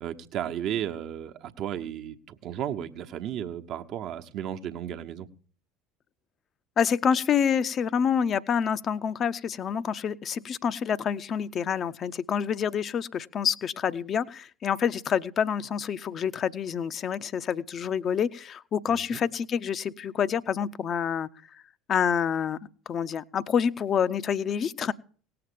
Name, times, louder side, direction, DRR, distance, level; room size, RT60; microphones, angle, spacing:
voice 1, 0.0-5.3 18.9-19.2, right 10 dB, 50° right, 1.1 m, -34 dB
voice 2, 6.8-21.3 21.5-21.6 21.9-22.6 22.9-24.9, left 7 dB, 40° left, 0.7 m, -27 dB
18.0 x 7.8 x 6.8 m
figure-of-eight pair, 65°, 0 cm